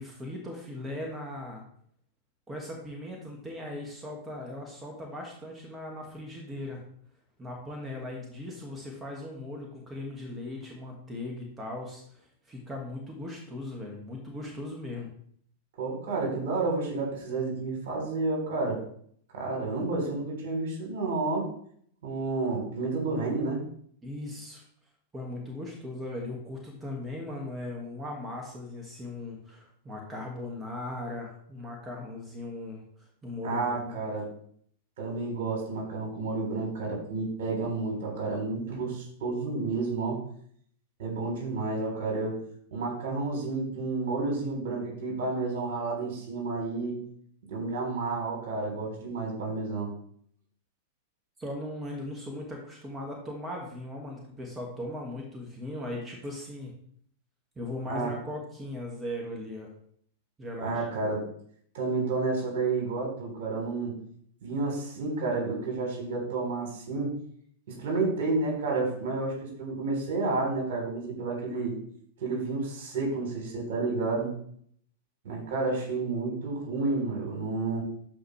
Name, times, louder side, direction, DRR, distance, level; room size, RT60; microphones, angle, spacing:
voice 1, 0.0-1.6 2.5-6.8 7.4-15.1 24.0-24.6 25.1-32.8 33.2-34.0 51.4-56.7 57.6-59.7 60.4-60.8, left 1 dB, 15° right, 0 dB, 2.2 m, -38 dB
voice 2, 15.8-18.8 19.3-21.5 22.0-23.6 33.4-34.3 35.0-40.2 41.0-42.4 42.7-47.0 47.5-49.9 57.9-58.1 60.6-61.2 61.7-63.9 64.4-67.1 67.7-71.7 72.2-74.3 75.2-77.8, right 3 dB, 60° right, 0 dB, 3.9 m, -30 dB
13.0 x 5.0 x 3.4 m, 0.62 s
hypercardioid pair, 100°, 0 cm